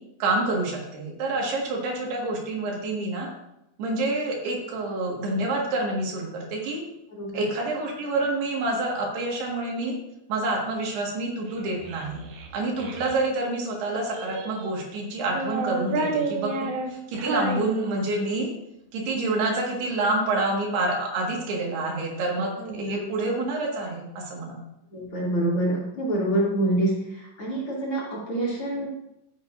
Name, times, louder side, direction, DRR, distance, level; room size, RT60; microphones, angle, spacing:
voice 1, 0.2-3.3 3.8-6.8 7.3-9.9 10.3-12.2 12.5-18.5 18.9-24.6, right 2 dB, 85° right, -1 dB, 4.0 m, -27 dB
voice 2, 7.1-7.4 22.6-23.0 24.9-28.9, right 1 dB, 35° left, -5 dB, 3.3 m, -26 dB
Child speech kid speaking, 11.5-13.2 13.9-14.8 15.2-18.4, right 3 dB, 70° right, 2.0 m, -31 dB
14.0 x 8.3 x 2.6 m, 0.85 s
omnidirectional pair, 4.5 m